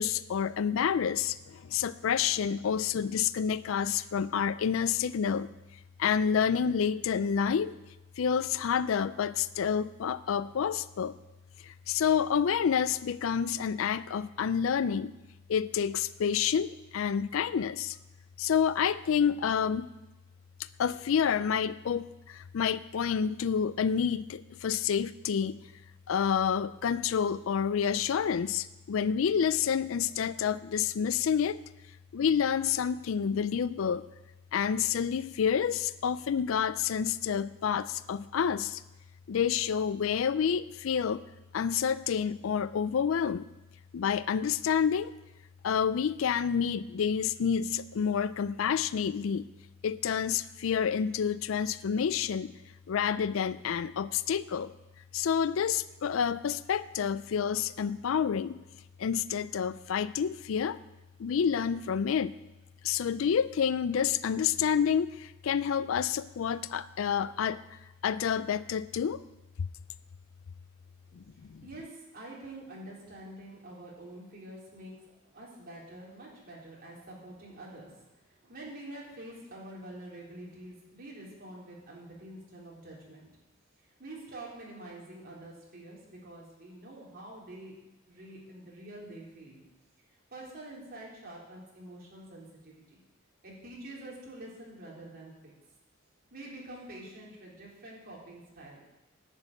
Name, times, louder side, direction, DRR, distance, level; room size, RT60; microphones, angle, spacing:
voice 1, 0.0-5.5 6.0-7.7 8.2-11.2 11.6-15.1 15.5-18.0 18.4-19.9 20.8-25.6 26.1-31.6 32.1-34.1 34.5-38.8 39.3-41.2 41.5-43.5 43.9-45.1 45.6-49.5 49.8-52.5 52.9-54.7 55.1-58.6 59.0-60.8 61.2-62.3 62.8-69.2 69.6-69.7 71.2-71.3 71.5-71.6, left 7 dB, 70° left, 16 dB, 0.4 m, -29 dB
voice 2, 71.2-83.3 84.0-87.8 88.1-89.6 90.3-93.0 93.4-95.5 96.3-98.8, right 1 dB, 45° right, -4 dB, 3.8 m, -47 dB
10.5 x 6.8 x 8.9 m, 0.99 s
head